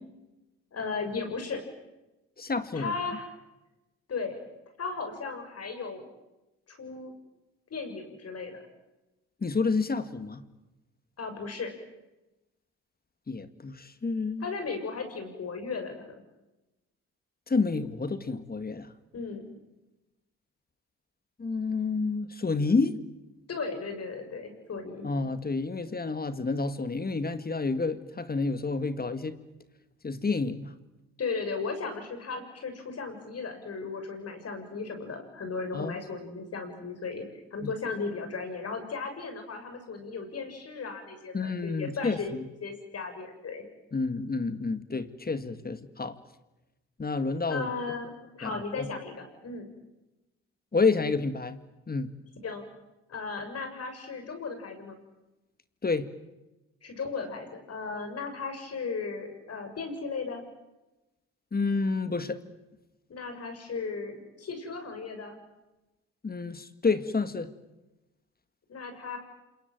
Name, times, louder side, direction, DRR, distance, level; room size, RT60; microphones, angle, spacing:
voice 1, 0.7-1.6 2.7-3.3 4.1-4.4 4.8-6.1 6.7-7.1 7.7-8.7 11.2-11.7 14.4-16.1 19.1-19.4 23.5-25.1 31.2-37.3 37.5-42.3 42.6-43.6 47.5-49.7 52.4-52.6 53.1-55.0 56.8-60.4 63.1-65.3 68.7-69.2, left 4 dB, 50° left, 6 dB, 7.0 m, -36 dB
voice 2, 2.4-2.9 9.4-10.4 13.3-14.4 17.5-18.9 21.4-22.9 25.0-29.4 30.0-30.7 35.7-36.0 41.3-42.2 43.9-46.2 47.0-47.7 48.4-48.9 50.7-51.6 51.9-52.1 55.8-56.1 61.5-62.4 66.2-67.5, left 4 dB, 30° left, 11 dB, 2.2 m, -29 dB
27.5 x 22.0 x 9.3 m, 1.0 s
supercardioid pair, 55°, 30 cm